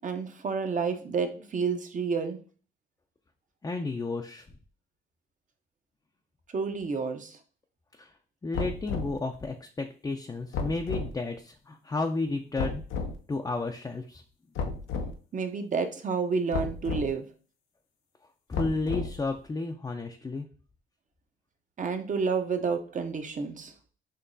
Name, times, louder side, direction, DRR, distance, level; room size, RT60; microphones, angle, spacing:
voice 1, 0.0-2.4 6.5-7.4 15.3-17.3 21.8-23.7, right 5 dB, 40° right, 6 dB, 0.8 m, -30 dB
voice 2, 3.6-4.5 7.9-8.1 8.4-12.8 13.3-14.2 18.5-20.5, left 3 dB, 20° left, 3 dB, 0.5 m, -32 dB
sound 1, 8.5-9.2 10.5-11.1 12.6-13.1 14.6-15.1 16.5-17.1 18.5-19.3, left 4 dB, 85° left, 0.7 m, -32 dB
6.8 x 2.9 x 2.7 m, 0.40 s
cardioid pair, 90°, 20 cm